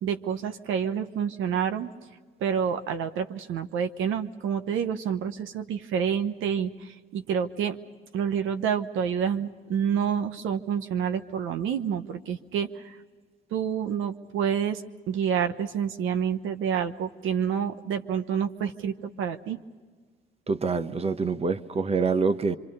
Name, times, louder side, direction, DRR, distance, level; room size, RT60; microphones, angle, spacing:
voice 1, 0.0-1.9 2.4-7.8 8.1-13.0 13.5-19.6, right 8 dB, 85° right, 1.1 m, -28 dB
voice 2, 20.5-22.6, right 4 dB, 30° right, 1.0 m, -26 dB
26.0 x 25.0 x 5.4 m
cardioid pair, 90°, 20 cm